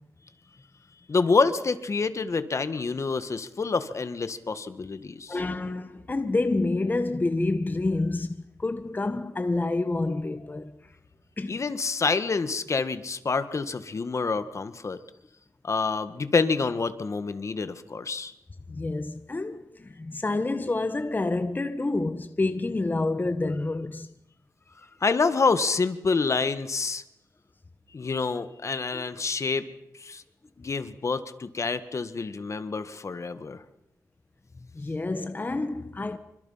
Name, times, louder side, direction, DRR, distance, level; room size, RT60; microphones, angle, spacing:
voice 1, 1.1-5.4 11.5-15.0 15.6-18.3 25.0-27.0 27.9-29.6 30.0-30.2 30.6-33.6, left 4 dB, 50° left, 1.7 m, -27 dB
voice 2, 5.3-10.7 11.4-11.6 18.7-24.1 24.8-24.9 28.9-29.0 34.7-36.2, left 2 dB, 30° left, 1.3 m, -28 dB
28.0 x 25.0 x 5.8 m
wide cardioid pair, 90°, 7 cm